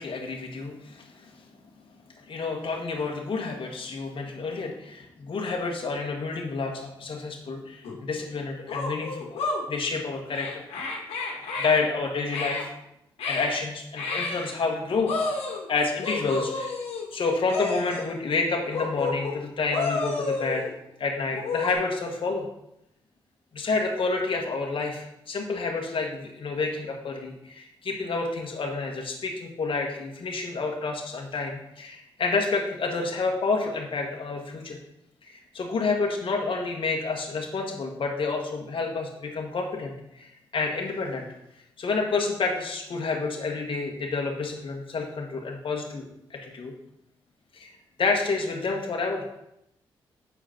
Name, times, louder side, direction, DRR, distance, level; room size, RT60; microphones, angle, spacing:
voice 1, 0.0-1.3 2.2-10.6 11.6-12.7 13.2-15.1 15.7-16.8 17.1-20.6 21.0-22.5 23.5-34.8 35.2-41.3 41.8-46.7 47.5-47.7 48.0-49.3, left 4 dB, 60° left, 0 dB, 1.4 m, -29 dB
sound 1, 7.8-8.0 8.7-9.6 10.3-11.7 12.3-12.7 13.2-13.5 14.0-14.5 15.1-15.7 16.0-17.1 17.5-18.1 18.7-19.4 19.7-20.7 21.3-21.7, left 3 dB, 85° left, 1.6 m, -30 dB
6.9 x 4.9 x 5.8 m, 0.83 s
supercardioid pair, 50°, 10 cm